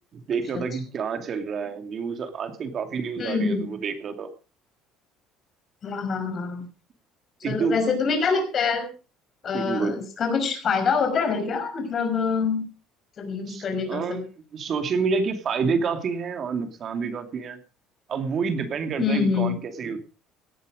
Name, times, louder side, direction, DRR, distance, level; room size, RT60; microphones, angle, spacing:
voice 1, 0.1-4.3 7.4-7.8 9.5-9.9 13.5-17.6 18.1-20.0, right 5 dB, 35° right, 7 dB, 2.6 m, -28 dB
voice 2, 3.2-3.7 5.8-6.7 7.4-8.9 9.4-12.6 13.2-14.2 19.0-19.5, left 5 dB, 35° left, 5 dB, 5.6 m, -25 dB
18.0 x 11.0 x 5.1 m, 0.35 s
cardioid pair, 150°, 0 cm